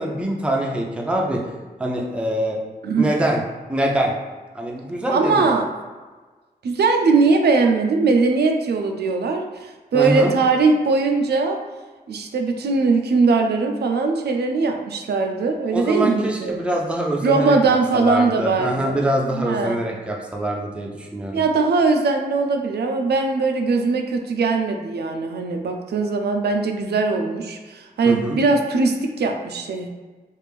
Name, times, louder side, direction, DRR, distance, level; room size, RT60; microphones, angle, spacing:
voice 1, 0.0-1.4 1.8-2.6 2.9-3.4 3.7-4.1 4.5-5.5 9.9-10.3 15.7-17.5 17.9-21.4 28.1-28.4, right 1 dB, 5° right, -1 dB, 0.4 m, -24 dB
voice 2, 5.1-5.7 6.6-11.6 12.1-16.6 17.2-19.0 19.3-19.9 21.3-29.9, right 4 dB, 90° right, 4 dB, 0.4 m, -20 dB
3.2 x 2.5 x 3.4 m, 1.3 s
wide cardioid pair, 165°, 16 cm